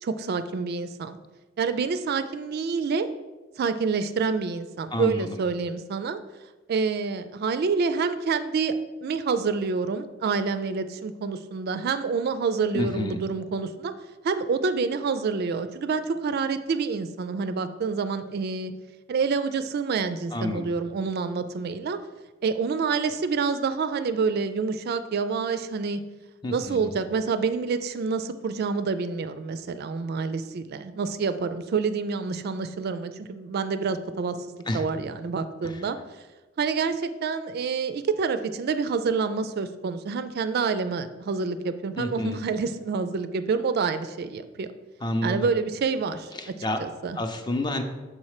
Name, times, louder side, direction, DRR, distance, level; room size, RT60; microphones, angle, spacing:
voice 1, 0.0-1.2 1.6-3.1 3.6-6.2 6.7-8.7 9.0-13.9 14.2-18.7 19.1-22.0 22.4-26.0 26.5-36.0 36.6-44.7 45.2-46.3 46.8-47.2, right 5 dB, 55° right, 11 dB, 0.4 m, -27 dB
voice 2, 4.9-5.4 12.7-13.2 20.3-20.7 26.4-26.9 34.7-34.8 35.6-35.9 42.0-42.4 45.0-45.5 46.3-46.8 47.1-47.8, left 1 dB, 20° left, 7 dB, 0.5 m, -29 dB
6.4 x 4.2 x 4.8 m, 1.2 s
head